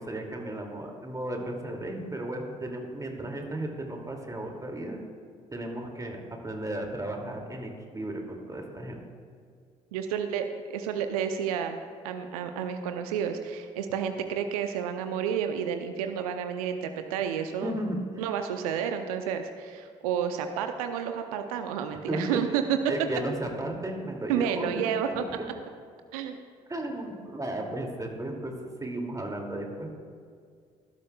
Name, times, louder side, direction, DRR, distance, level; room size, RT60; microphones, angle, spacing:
voice 1, 0.0-5.0 5.5-9.0 17.6-18.2 21.9-22.2 22.9-24.7 25.1-25.2 26.7-28.5 28.8-29.9, right 1 dB, 20° right, 1 dB, 2.5 m, -34 dB
voice 2, 9.9-11.8 12.0-17.8 18.2-22.6 24.3-25.2 26.1-26.4, right 8 dB, 75° right, 7 dB, 0.6 m, -31 dB
19.0 x 12.0 x 2.3 m, 2.2 s
figure-of-eight pair, 45°, 19 cm